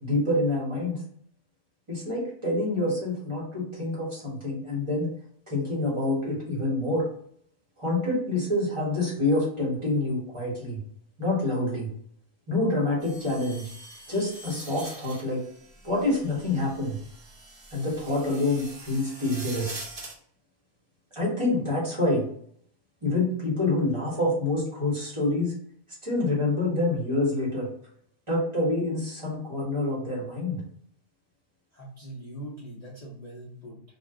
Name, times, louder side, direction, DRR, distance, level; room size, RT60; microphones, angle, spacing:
voice 1, 0.0-1.0 1.9-5.1 5.5-7.1 7.8-10.8 11.2-11.9 12.5-13.7 14.1-15.4 15.8-17.0 17.7-19.8 21.1-22.2 23.0-25.5 26.0-27.7 28.3-30.6, left 2 dB, 25° right, -6 dB, 1.1 m, -27 dB
sound 1, 13.0-20.1, right 2 dB, 40° right, 0.5 m, -44 dB
voice 2, 31.7-33.8, right 1 dB, 60° left, -4 dB, 0.4 m, -42 dB
2.5 x 2.4 x 3.5 m, 0.63 s
omnidirectional pair, 1.5 m